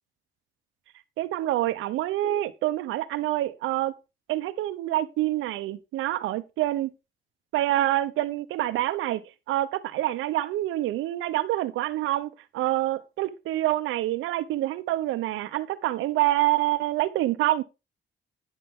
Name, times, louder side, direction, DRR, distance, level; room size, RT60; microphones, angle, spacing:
voice 1, 1.2-3.9 4.3-6.9 7.5-9.2 9.5-17.6, right 15 dB, 90° right, 0.8 m, -26 dB
9.1 x 7.9 x 3.6 m
cardioid pair, 90°, 20 cm